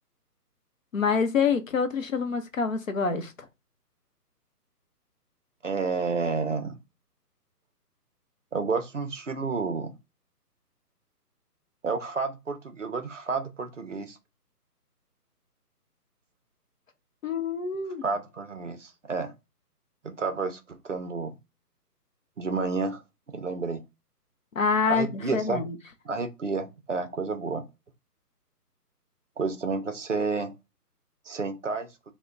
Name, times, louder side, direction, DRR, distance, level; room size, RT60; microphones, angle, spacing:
voice 1, 0.9-3.3 17.2-18.0 24.6-25.8, left 5 dB, 55° left, 0.7 m, -26 dB
voice 2, 5.6-6.8 8.5-10.0 11.8-14.2 18.0-19.3 20.0-21.4 22.4-23.0 23.3-23.8 24.9-25.6 26.1-27.7 29.4-30.5 31.3-31.9, right 4 dB, 50° right, 0.5 m, -30 dB
3.3 x 2.1 x 3.7 m
hypercardioid pair, 175°, 48 cm